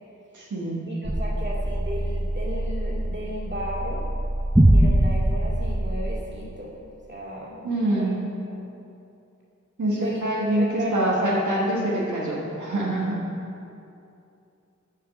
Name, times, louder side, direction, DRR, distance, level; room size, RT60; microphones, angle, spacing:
voice 1, 0.3-0.8 7.6-8.2 9.8-13.2, right 1 dB, 85° right, -5 dB, 1.4 m, -25 dB
voice 2, 0.8-4.0 4.7-6.8 7.1-8.1 9.9-10.2 10.5-11.3, equal, 40° right, -5 dB, 2.2 m, -35 dB
sound 1, 1.0-6.1, right 1 dB, 5° right, 0.6 m, -23 dB
7.3 x 6.0 x 7.2 m, 2.6 s
wide cardioid pair, 60°, 29 cm